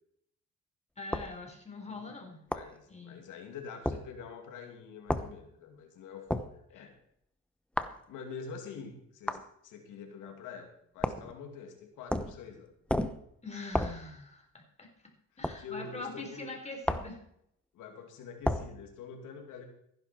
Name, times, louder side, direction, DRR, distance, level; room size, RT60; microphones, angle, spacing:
voice 1, 1.0-2.4 2.9-3.2 13.4-15.1 15.4-17.2, left 3 dB, 20° left, 2 dB, 4.1 m, -43 dB
sound 1, 1.1-1.3 2.5-2.7 3.8-4.0 5.1-5.3 6.3-6.5 7.8-8.0 9.3-9.5 11.0-11.3 12.1-12.4 12.9-13.2 13.7-14.0 15.4-15.6 16.8-17.2 18.4-18.7, left 1 dB, 5° left, 0.9 m, -31 dB
voice 2, 2.5-6.9 8.1-12.7 15.6-16.5 17.7-19.7, left 5 dB, 90° left, 4 dB, 2.6 m, -46 dB
15.0 x 10.5 x 4.4 m, 0.73 s
cardioid pair, 90°, 30 cm